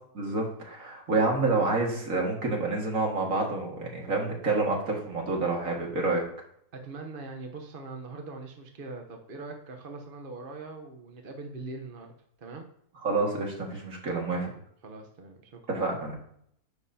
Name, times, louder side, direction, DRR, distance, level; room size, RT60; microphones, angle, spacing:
voice 1, 0.1-6.2 13.0-14.5 15.7-16.1, right 3 dB, 55° right, -1 dB, 2.3 m, -28 dB
voice 2, 6.7-12.1 12.4-12.7 14.5-15.6 15.9-16.0, right 3 dB, 40° right, 3 dB, 1.0 m, -42 dB
11.0 x 7.4 x 2.8 m, 0.67 s
omnidirectional pair, 1.7 m